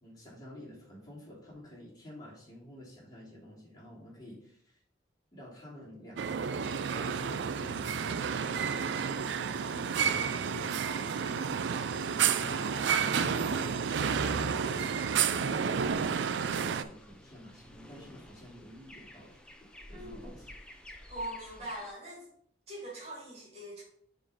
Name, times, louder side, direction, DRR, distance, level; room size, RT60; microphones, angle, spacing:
voice 1, 0.0-4.8 5.3-6.6 6.8-11.5 12.2-13.8 14.2-19.4 19.9-20.5, left 1 dB, 25° left, -7 dB, 3.0 m, -50 dB
sound 1, 6.2-16.8, right 7 dB, 85° right, 0.4 m, -30 dB
sound 2, 15.6-21.9, left 1 dB, 5° left, 0.7 m, -52 dB
voice 2, 19.9-20.4 21.1-22.3 22.7-23.8, right 1 dB, 40° right, -3 dB, 2.4 m, -42 dB
6.8 x 3.9 x 5.0 m, 0.66 s
head